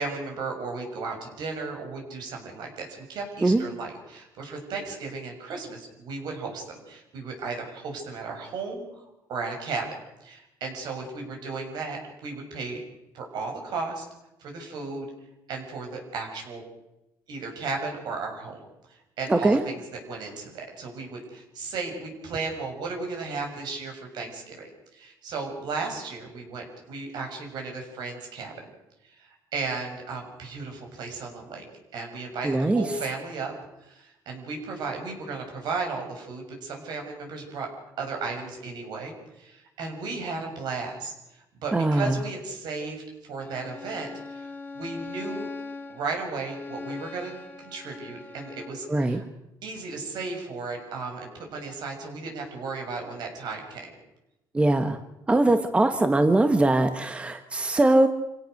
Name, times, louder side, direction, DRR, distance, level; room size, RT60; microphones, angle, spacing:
voice 1, 0.0-9.0 9.3-9.9 10.2-12.8 13.1-14.0 14.4-15.1 15.5-16.6 17.3-18.6 19.2-24.6 24.9-28.5 29.0-31.6 31.9-33.5 33.8-37.7 38.0-41.1 41.6-44.5 44.7-45.5 45.9-49.2 49.6-53.9, right 4 dB, 65° right, 2 dB, 6.9 m, -35 dB
voice 2, 19.3-19.6 32.4-32.8 41.7-42.2 48.9-49.2 54.5-55.0 55.3-58.1, right 2 dB, 15° right, 8 dB, 1.3 m, -21 dB
Bowed string instrument, 43.4-48.9, left 3 dB, 20° left, 2.7 m, -40 dB
27.5 x 17.0 x 6.6 m, 0.94 s
cardioid pair, 130°, 8 cm